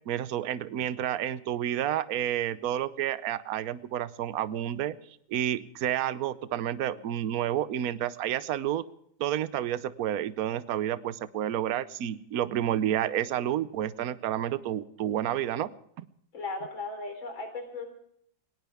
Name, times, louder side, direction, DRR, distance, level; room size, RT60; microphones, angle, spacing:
voice 1, 0.1-5.0 5.3-8.8 9.2-15.7, right 11 dB, 60° right, 15 dB, 1.1 m, -30 dB
voice 2, 16.3-17.9, left 3 dB, 85° left, 4 dB, 4.6 m, -36 dB
20.5 x 18.5 x 3.5 m, 0.68 s
omnidirectional pair, 2.1 m